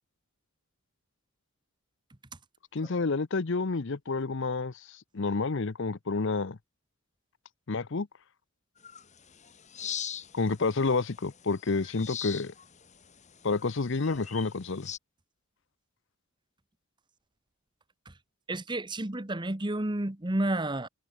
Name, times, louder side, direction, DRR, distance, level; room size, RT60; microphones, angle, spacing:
voice 1, 2.7-4.7 5.1-6.6 7.7-8.1 10.3-12.5 13.4-14.9, left 3 dB, 55° left, 0.7 m, -29 dB
sound 1, 8.8-15.0, left 8 dB, 30° left, 3.1 m, -42 dB
voice 2, 18.5-20.9, right 1 dB, 20° right, 1.1 m, -30 dB
head